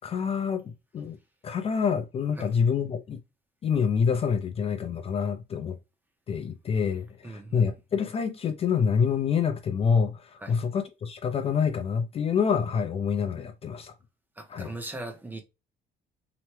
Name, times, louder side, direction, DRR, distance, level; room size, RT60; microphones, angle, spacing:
voice 1, 0.0-1.2 1.4-3.2 3.6-5.8 6.3-13.9 14.5-14.7, left 6 dB, 35° left, 0.4 m, -27 dB
voice 2, 7.2-7.7 10.4-10.6 14.4-15.4, right 2 dB, 10° right, 0.6 m, -39 dB
2.9 x 2.1 x 3.1 m
cardioid pair, 130°, 17 cm